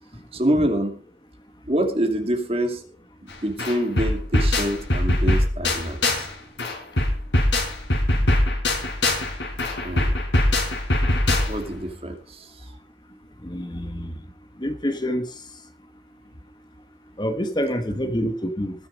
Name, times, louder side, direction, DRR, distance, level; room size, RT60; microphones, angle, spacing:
voice 1, 0.3-1.0 1.7-2.8 3.2-6.3 9.8-10.2 11.3-12.7 17.9-18.1, right 1 dB, 35° right, 2.4 m, -26 dB
sound 1, 3.3-3.4 3.6-6.3 6.6-11.7, left 1 dB, 90° left, 4.7 m, -22 dB
voice 2, 13.4-14.1 14.6-15.2 17.2-18.7, equal, 25° left, 1.1 m, -26 dB
20.5 x 6.9 x 5.1 m
head